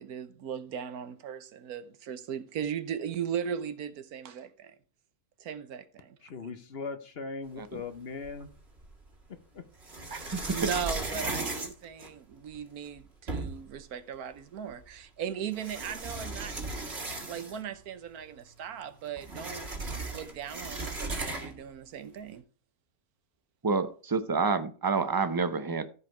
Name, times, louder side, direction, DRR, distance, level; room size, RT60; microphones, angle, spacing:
voice 1, 0.0-4.7 5.4-6.2 10.5-19.7 20.1-22.4, right 8 dB, 85° right, 1.4 m, -38 dB
voice 2, 6.2-8.5 9.5-9.6, left 4 dB, 50° left, 1.0 m, -39 dB
sound 1, 8.2-9.0 9.8-12.5 13.0-13.1 13.3-13.8 14.8-14.9 15.5-17.7 18.0-18.1 18.4-21.7, right 2 dB, 45° right, 2.2 m, -36 dB
voice 3, 10.1-10.4 11.2-11.5 23.6-25.8, right 4 dB, 20° right, 0.6 m, -29 dB
14.5 x 5.0 x 4.5 m
omnidirectional pair, 1.5 m